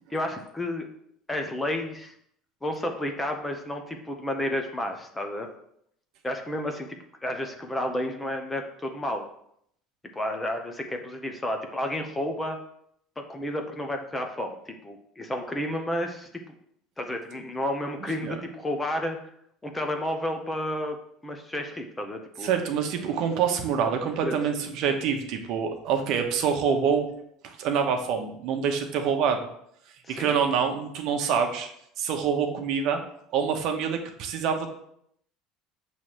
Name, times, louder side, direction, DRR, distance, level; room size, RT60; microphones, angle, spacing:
voice 1, 0.1-0.9 1.3-2.1 2.6-5.5 6.2-6.9 7.2-9.2 10.1-12.6 13.3-16.3 17.0-19.2 19.6-21.0 21.2-22.5 24.2-24.4 30.0-30.5, left 1 dB, 10° left, 4 dB, 0.7 m, -31 dB
voice 2, 22.4-27.1 27.4-29.4 30.1-31.7 32.0-33.0 33.3-34.7, right 7 dB, 55° right, 4 dB, 1.0 m, -26 dB
7.3 x 3.2 x 6.2 m, 0.71 s
cardioid pair, 160°, 0 cm